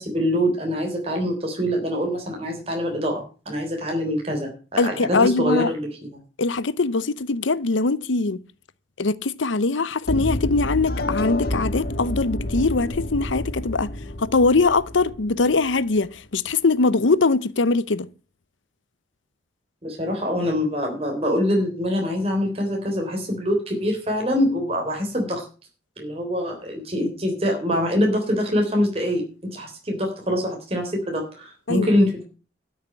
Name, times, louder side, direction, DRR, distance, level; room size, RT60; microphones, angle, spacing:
voice 1, 0.0-5.9 19.8-25.5 26.0-29.2 29.5-32.2, equal, 30° right, 3.7 m, -24 dB
voice 2, 4.8-5.7 6.4-8.4 9.0-13.9 14.2-18.1 31.7-31.9, left 3 dB, 90° left, 0.8 m, -22 dB
sound 1, 10.1-16.0, left 1 dB, 50° left, 1.5 m, -29 dB
12.5 x 6.6 x 8.7 m
head